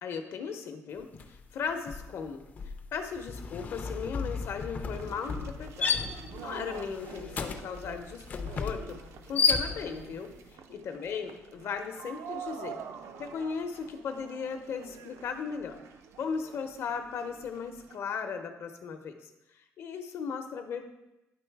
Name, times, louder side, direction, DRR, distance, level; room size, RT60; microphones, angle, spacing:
voice 1, 0.0-6.1 6.4-9.0 9.3-12.8 13.2-15.8 16.2-20.8, left 6 dB, 60° left, 6 dB, 0.8 m, -37 dB
sound 1, 1.1-1.4 1.7-10.2, left 5 dB, 35° left, 0.4 m, -33 dB
sound 2, 4.9-18.0, right 7 dB, 80° right, 0.5 m, -47 dB
9.8 x 3.9 x 4.6 m, 0.95 s
cardioid pair, 170°, 5 cm